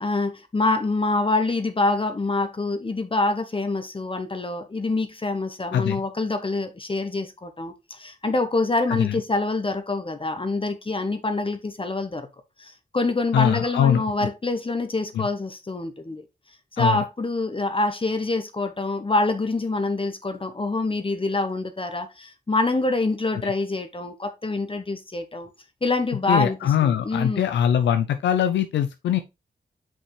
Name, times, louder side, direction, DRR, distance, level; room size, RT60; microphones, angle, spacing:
voice 1, 0.0-12.3 12.6-16.2 16.8-25.5 25.8-26.6 26.8-27.5, left 2 dB, 30° left, 1.0 m, -26 dB
voice 2, 8.9-9.2 13.3-14.0 15.1-15.3 16.8-17.0 23.4-23.5 26.3-29.2, left 9 dB, 90° left, 0.4 m, -22 dB
5.5 x 5.4 x 3.2 m
cardioid pair, 50°, 18 cm